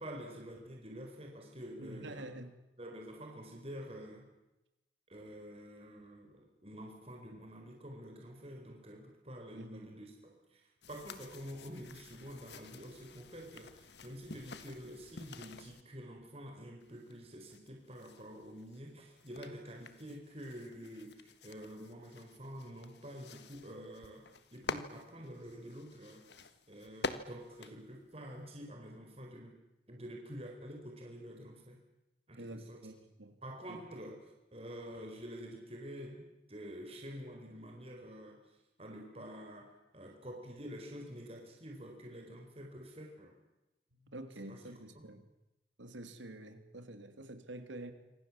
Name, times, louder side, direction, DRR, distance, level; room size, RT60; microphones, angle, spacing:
voice 1, 0.0-2.2 2.8-4.3 5.1-10.6 10.9-26.2 26.7-29.6 29.9-31.8 32.3-32.8 33.4-34.2 34.5-38.4 38.8-43.4 44.4-44.8, equal, 30° right, 1 dB, 4.6 m, -48 dB
voice 2, 1.8-2.5 9.5-10.0 32.4-33.4 33.7-33.8 43.9-45.3 45.8-47.9, right 1 dB, 90° right, 8 dB, 3.1 m, -48 dB
sound 1, 10.8-15.8 16.8-28.7, left 3 dB, 65° left, 1.6 m, -48 dB
27.5 x 25.0 x 7.4 m, 0.97 s
head